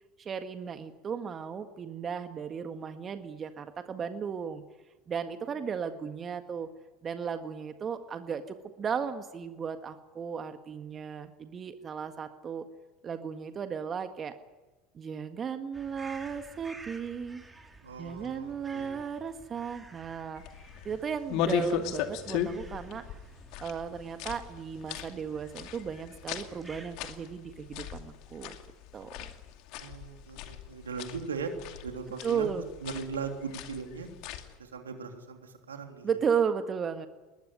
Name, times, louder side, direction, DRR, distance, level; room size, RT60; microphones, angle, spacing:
voice 1, 0.2-4.6 5.1-6.7 7.0-12.6 13.0-14.3 14.9-17.4 18.0-23.0 23.6-28.6 28.9-29.3 32.2-32.6 36.0-37.1, right 6 dB, 35° right, 8 dB, 1.7 m, -35 dB
sound 1, 15.7-26.9, right 2 dB, 15° right, 4.5 m, -52 dB
voice 2, 17.8-18.9 29.8-31.5 31.8-32.5 32.8-34.1 34.6-36.1, right 5 dB, 85° right, 4 dB, 3.3 m, -39 dB
sound 2, 20.3-34.6, left 9 dB, 60° left, 2.4 m, -38 dB
21.0 x 20.5 x 9.6 m, 1.2 s
hypercardioid pair, 75°, 0 cm